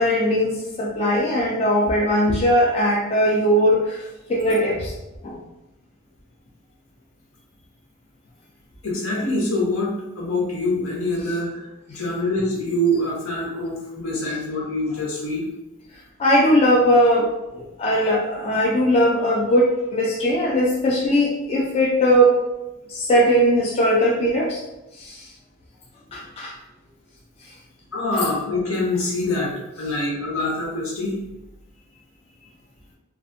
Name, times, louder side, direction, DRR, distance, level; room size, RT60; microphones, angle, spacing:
voice 1, 0.0-4.0 4.3-4.9 5.2-5.3 16.2-22.4 22.9-24.6 26.1-26.5 28.1-28.2, equal, 30° left, -4 dB, 0.3 m, -19 dB
voice 2, 8.8-15.5 27.9-31.2, left 1 dB, 80° left, -4 dB, 0.9 m, -25 dB
2.6 x 2.4 x 2.6 m, 0.97 s
head